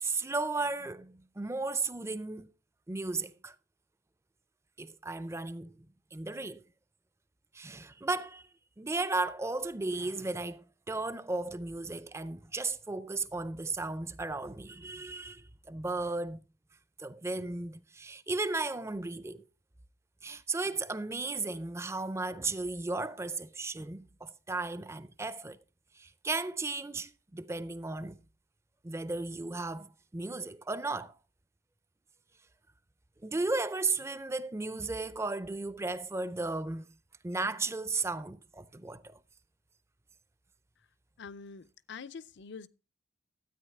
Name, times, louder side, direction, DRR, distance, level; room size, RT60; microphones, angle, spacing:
voice 1, 0.0-2.5 2.9-3.6 4.8-5.9 6.1-6.6 7.5-8.4 8.8-16.4 17.0-19.4 20.2-25.6 25.9-28.2 28.8-31.1 33.2-36.9 37.2-39.2, right 3 dB, 15° right, 0.4 m, -35 dB
voice 2, 41.2-42.7, left 5 dB, 60° left, 0.5 m, -45 dB
13.0 x 8.9 x 3.5 m
head